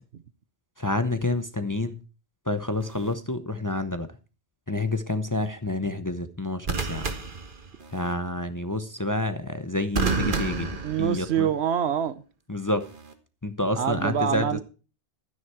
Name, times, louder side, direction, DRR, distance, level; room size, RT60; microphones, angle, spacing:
voice 1, 0.8-2.0 2.5-4.1 4.7-7.1 7.9-11.5 12.5-12.9 13.4-14.6, left 2 dB, 20° left, 0.7 m, -28 dB
sound 1, 2.8-3.1 6.6-8.1 9.9-11.6 12.8-13.1, right 4 dB, 50° right, 1.5 m, -30 dB
voice 2, 10.8-12.2 13.8-14.6, right 8 dB, 70° right, 1.1 m, -26 dB
12.5 x 9.7 x 4.6 m
omnidirectional pair, 1.1 m